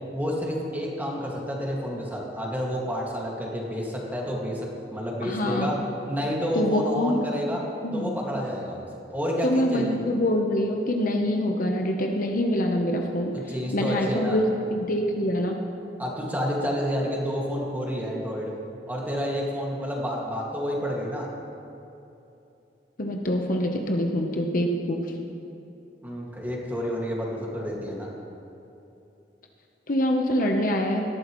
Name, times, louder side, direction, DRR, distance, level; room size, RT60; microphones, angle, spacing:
voice 1, 0.1-5.8 6.1-7.6 7.9-8.8 9.1-10.0 13.3-14.4 16.0-18.5 18.9-21.3 26.0-28.1, equal, 10° right, -3 dB, 2.0 m, -29 dB
voice 2, 5.2-5.7 6.5-7.2 7.8-8.2 9.4-13.3 13.7-14.4 14.7-15.6 23.0-25.0 29.9-31.0, left 1 dB, 50° left, 2 dB, 1.0 m, -25 dB
18.5 x 13.0 x 3.1 m, 2.9 s
head